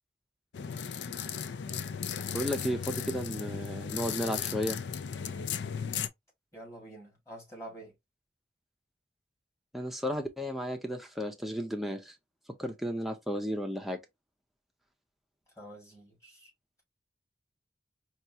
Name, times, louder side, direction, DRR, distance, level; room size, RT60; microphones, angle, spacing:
sound 1, 0.5-6.1, left 7 dB, 75° left, 0.4 m, -36 dB
voice 1, 2.3-4.8 9.7-12.1 12.6-14.0, equal, ahead, 0.5 m, -33 dB
voice 2, 6.5-7.9 15.6-16.5, right 1 dB, 15° left, 1.9 m, -47 dB
4.4 x 2.4 x 2.8 m
head